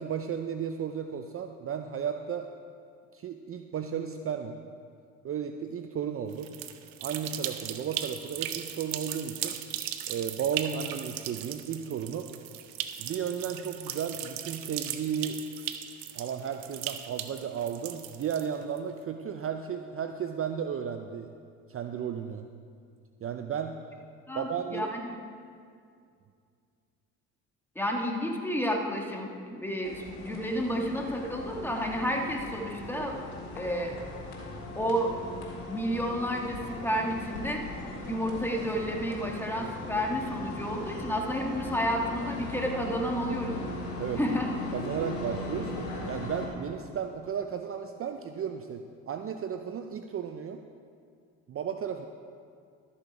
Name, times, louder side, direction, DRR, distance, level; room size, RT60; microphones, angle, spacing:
voice 1, 0.0-2.5 3.1-4.6 5.2-6.5 7.0-9.6 10.1-12.3 13.0-15.4 16.1-21.3 21.7-22.5 23.2-23.8 24.3-24.9 44.0-44.2 44.7-50.6 51.5-52.1, right 8 dB, 40° right, 6 dB, 0.6 m, -34 dB
sound 1, 6.3-18.8, right 11 dB, 70° right, 0.8 m, -38 dB
voice 2, 24.3-25.1 27.7-33.2 33.5-33.9 34.7-35.1 35.7-37.6 38.0-43.7 44.2-44.5, equal, 5° left, 1 dB, 1.6 m, -31 dB
sound 2, 29.8-46.5, left 1 dB, 80° left, 3.1 m, -39 dB
13.0 x 7.0 x 4.9 m, 2.3 s
supercardioid pair, 80°, 36 cm